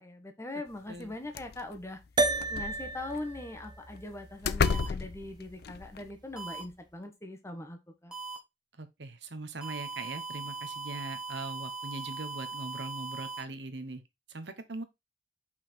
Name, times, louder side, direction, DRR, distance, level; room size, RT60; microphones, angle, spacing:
voice 1, 0.0-2.0 2.5-8.1, left 2 dB, 15° left, 1.3 m, -41 dB
sound 1, 1.0-1.1 1.3-1.8 2.4-3.2 4.0-4.1 4.4-6.0, left 5 dB, 60° left, 0.4 m, -31 dB
sound 2, 2.2-6.7, right 2 dB, 25° right, 0.8 m, -35 dB
sound 3, 4.6-4.9 6.4-6.6 8.1-8.4 9.6-13.4, right 5 dB, 5° right, 1.6 m, -39 dB
voice 2, 8.8-14.0 14.3-14.8, right 2 dB, 75° right, 1.2 m, -41 dB
5.8 x 4.6 x 4.4 m
head